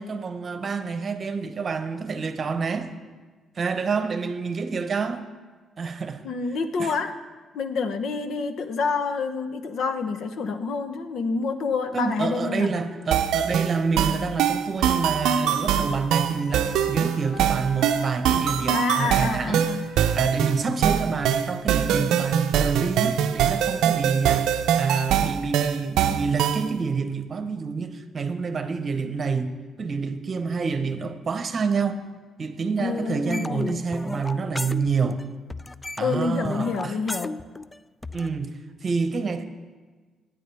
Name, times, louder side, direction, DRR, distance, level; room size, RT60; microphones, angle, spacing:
voice 1, 0.0-2.9 3.6-5.2 5.8-6.2 6.8-6.9 11.9-19.7 20.1-32.0 32.4-35.2 36.0-36.9 38.1-38.5 38.8-39.4, right 5 dB, 45° right, 1.0 m, -28 dB
voice 2, 6.2-7.2 7.5-12.7 18.7-19.8 32.8-33.8 36.0-37.3, left 4 dB, 70° left, 0.9 m, -28 dB
sound 1, 12.1-21.6, left 2 dB, 40° left, 3.9 m, -46 dB
sound 2, 13.1-26.7, right 9 dB, 85° right, 0.5 m, -23 dB
sound 3, 33.3-35.2 35.5-38.3, left 2 dB, 20° left, 0.4 m, -34 dB
17.5 x 9.0 x 3.5 m
cardioid pair, 90°, 0 cm